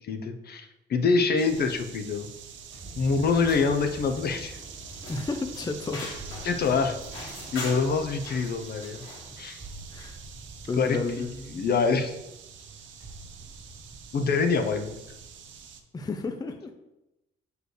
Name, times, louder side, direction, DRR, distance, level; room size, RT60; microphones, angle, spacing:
voice 1, 0.0-2.3 3.0-4.6 6.4-9.0 9.4-9.6 10.8-11.0 11.5-12.2 14.1-15.0, left 4 dB, 55° left, 6 dB, 0.7 m, -25 dB
sound 1, 1.4-15.8, right 7 dB, 70° right, 0.7 m, -46 dB
sound 2, 1.5-15.8, right 2 dB, 55° right, 1.8 m, -47 dB
sound 3, 3.2-9.4, left 2 dB, 85° left, 2.3 m, -43 dB
voice 2, 5.1-6.1 9.9-10.2 10.7-11.6 15.9-16.7, left 3 dB, 20° left, 6 dB, 0.5 m, -32 dB
6.3 x 4.7 x 3.3 m, 0.93 s
cardioid pair, 90°, 20 cm